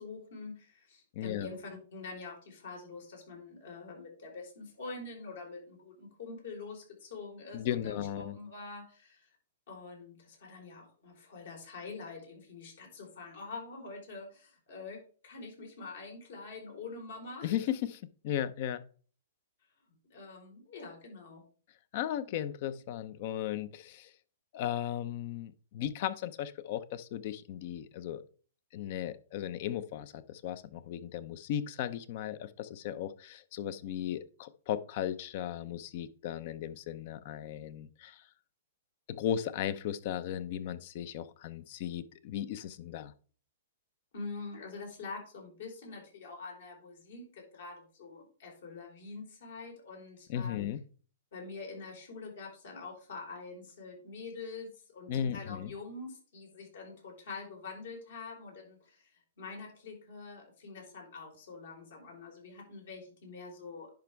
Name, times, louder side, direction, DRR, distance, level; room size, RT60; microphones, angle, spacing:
voice 1, 0.0-9.3 9.7-15.0 15.2-17.7 19.9-21.4 44.1-50.7 51.3-59.1 59.4-63.9, left 4 dB, 70° left, 0 dB, 4.3 m, -45 dB
voice 2, 1.1-1.5 7.5-8.4 17.4-18.8 21.9-24.1 24.5-28.2 28.7-38.2 39.1-43.1 50.3-50.8 55.1-55.7, left 10 dB, 50° left, 15 dB, 0.7 m, -36 dB
10.5 x 5.2 x 3.5 m, 0.41 s
hypercardioid pair, 130°, 0 cm